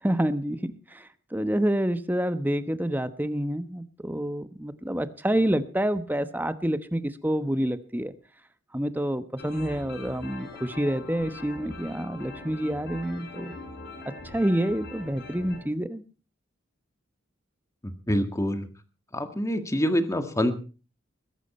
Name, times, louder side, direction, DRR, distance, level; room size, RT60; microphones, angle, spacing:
voice 1, 0.0-8.1 8.7-13.5 14.2-16.0, right 1 dB, 10° right, 11 dB, 1.0 m, -28 dB
sound 1, 9.4-15.6, left 3 dB, 60° left, 7.4 m, -42 dB
voice 2, 17.8-18.7 19.1-20.5, equal, 15° left, 8 dB, 1.8 m, -26 dB
21.0 x 11.0 x 4.3 m, 0.35 s
head